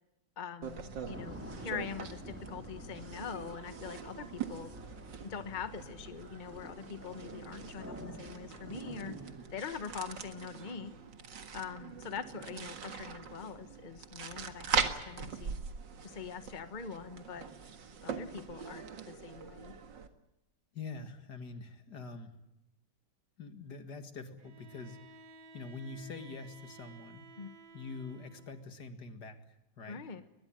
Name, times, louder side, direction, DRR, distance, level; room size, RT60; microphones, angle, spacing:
voice 1, 0.4-4.7 5.2-9.1 9.5-10.9 11.5-15.6 16.0-17.5 18.0-19.7 27.4-27.5 29.9-30.2, left 6 dB, 30° left, 10 dB, 1.3 m, -43 dB
sound 1, 0.6-20.1, right 6 dB, 85° right, 2.4 m, -42 dB
sound 2, 1.1-9.3, equal, 5° right, 4.4 m, -49 dB
voice 2, 20.7-22.3 23.4-25.0 25.5-27.3 27.7-30.0, left 4 dB, 70° left, 8 dB, 2.6 m, -45 dB
Bowed string instrument, 24.4-28.7, right 2 dB, 65° right, 2.6 m, -55 dB
22.5 x 20.5 x 8.9 m, 0.93 s
omnidirectional pair, 1.9 m